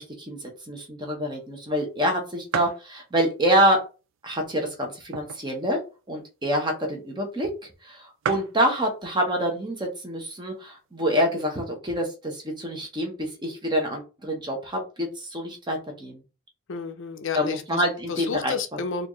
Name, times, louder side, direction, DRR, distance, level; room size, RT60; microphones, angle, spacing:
voice 1, 0.0-3.8 4.2-5.8 6.1-7.5 7.8-16.2 17.3-18.5, equal, 20° right, 0.9 m, -26 dB
sound 1, 1.5-1.6 2.0-2.1 2.5-2.9 3.5-3.6 4.4-5.6 6.0-6.1 6.2-6.5 7.2-7.3 7.6-7.7 7.9-8.0 8.2-8.6 9.5-9.8 10.4-10.5 10.7-11.5, right 6 dB, 60° right, 0.4 m, -34 dB
voice 2, 16.7-19.1, left 5 dB, 60° left, 0.5 m, -31 dB
4.2 x 2.6 x 3.1 m
head